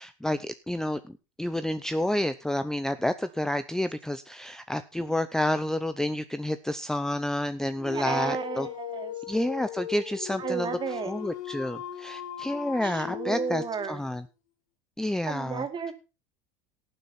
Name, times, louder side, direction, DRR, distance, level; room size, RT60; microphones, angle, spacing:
voice 1, 0.0-8.7 9.3-10.7 11.0-14.2 15.0-15.6, left 1 dB, 5° left, 12 dB, 0.7 m, -29 dB
Dog, 7.7-14.1, left 12 dB, 85° left, 4.1 m, -39 dB
voice 2, 7.9-9.2 10.4-11.2 12.7-14.0 15.2-15.9, right 6 dB, 30° right, 6 dB, 2.6 m, -33 dB
18.0 x 7.6 x 4.2 m, 0.30 s
supercardioid pair, 125°, 17 cm